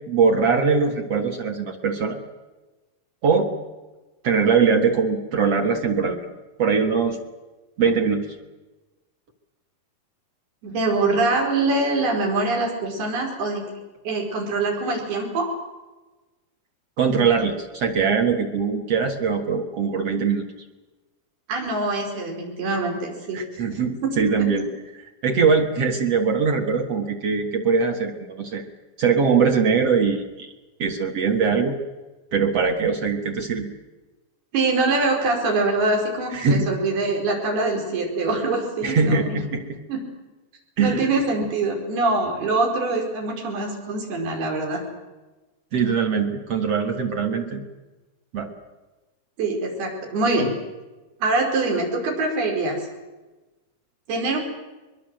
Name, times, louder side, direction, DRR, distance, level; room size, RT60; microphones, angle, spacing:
voice 1, 0.1-2.2 3.2-3.5 4.2-6.3 6.6-7.2 7.8-8.3 17.0-20.4 23.3-24.7 24.9-28.6 29.0-30.5 30.8-31.8 32.3-33.7 36.3-36.7 38.8-39.8 40.8-41.1 45.7-47.6 48.3-48.5, right 5 dB, 50° right, 3 dB, 2.2 m, -21 dB
voice 2, 10.6-13.6 14.1-15.5 21.5-23.7 24.0-24.1 34.5-39.4 39.9-40.0 40.8-44.8 49.4-50.5 51.2-52.8 54.1-54.4, right 3 dB, 85° right, 1 dB, 6.7 m, -24 dB
22.5 x 22.5 x 7.8 m, 1.2 s
omnidirectional pair, 4.4 m